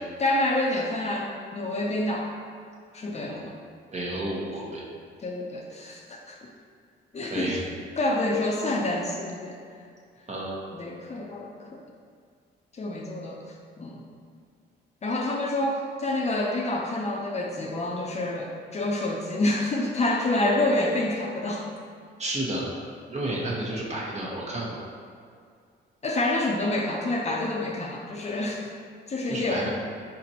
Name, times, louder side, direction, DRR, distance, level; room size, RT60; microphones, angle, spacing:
voice 1, 0.2-2.3 2.9-3.5 5.2-6.4 7.1-7.6 8.0-9.6 10.7-11.8 12.7-13.4 13.8-14.0 15.0-21.7 26.0-28.6 29.1-29.7, left 2 dB, 35° left, -1 dB, 0.6 m, -27 dB
voice 2, 3.9-4.8 7.3-7.6 10.3-10.6 22.2-22.7 23.1-24.8 29.3-29.7, right 1 dB, 35° right, -4 dB, 1.0 m, -31 dB
4.2 x 4.1 x 2.9 m, 2.2 s
cardioid pair, 90°, 20 cm